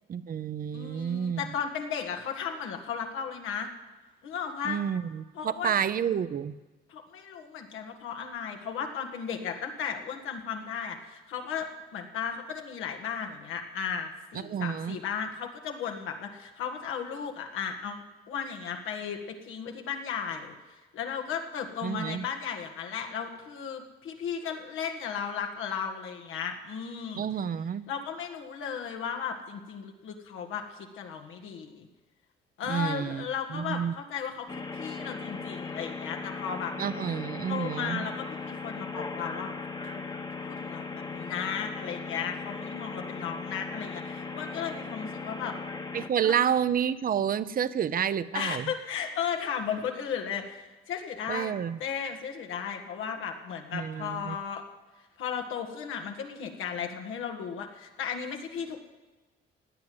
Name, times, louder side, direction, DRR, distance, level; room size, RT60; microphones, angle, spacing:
voice 1, 0.1-1.4 4.6-6.5 14.4-15.0 21.8-22.3 27.2-27.8 32.7-33.3 33.5-33.9 36.8-38.1 45.9-48.7 51.3-51.8 53.7-54.4, right 8 dB, 45° right, 15 dB, 0.7 m, -29 dB
voice 2, 0.7-3.7 4.2-4.8 5.3-5.8 6.9-11.7 11.9-27.2 27.9-31.9 32.6-36.7 37.5-39.5 39.8-40.0 40.5-45.6 46.2-46.4 48.3-51.5 51.8-54.6 55.2-58.8, left 7 dB, 90° left, 3 dB, 1.9 m, -35 dB
sound 1, 34.5-46.1, left 4 dB, 20° left, 1.1 m, -38 dB
17.0 x 9.4 x 7.9 m, 1.2 s
cardioid pair, 90°, 20 cm